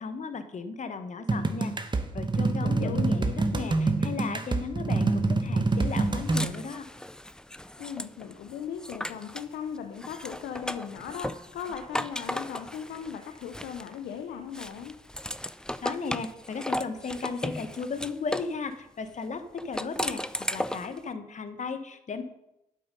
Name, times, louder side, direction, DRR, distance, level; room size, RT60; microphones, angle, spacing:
voice 1, 0.0-6.9 15.8-20.2 20.5-22.2, left 5 dB, 45° left, 10 dB, 1.2 m, -35 dB
sound 1, 1.3-6.4, right 3 dB, 30° right, 1.2 m, -26 dB
voice 2, 2.6-3.0 7.8-14.9, left 8 dB, 75° left, 6 dB, 0.9 m, -38 dB
sound 2, 5.9-9.5 10.0-14.1 14.5-18.6 19.6-21.0, left 1 dB, 5° left, 0.5 m, -36 dB
8.5 x 7.7 x 5.4 m, 0.87 s
hypercardioid pair, 50°, 17 cm